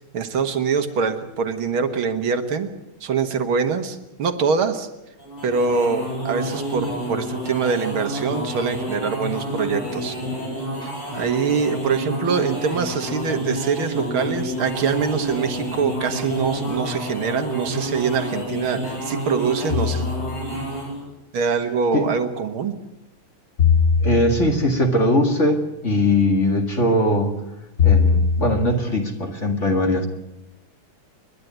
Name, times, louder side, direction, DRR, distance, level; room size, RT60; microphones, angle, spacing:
voice 1, 0.1-2.7 3.0-4.9 5.4-10.2 10.8-20.0 21.3-22.8, right 5 dB, 70° right, 8 dB, 2.2 m, -24 dB
sound 1, 5.2-21.0, equal, 75° left, 9.1 m, -29 dB
sound 2, 19.7-20.5 23.6-24.6 27.8-28.7, left 6 dB, 50° left, 3.2 m, -20 dB
voice 2, 24.0-27.3 27.8-30.1, left 1 dB, 35° left, 4 dB, 2.2 m, -20 dB
29.0 x 11.5 x 9.4 m, 0.92 s
omnidirectional pair, 2.4 m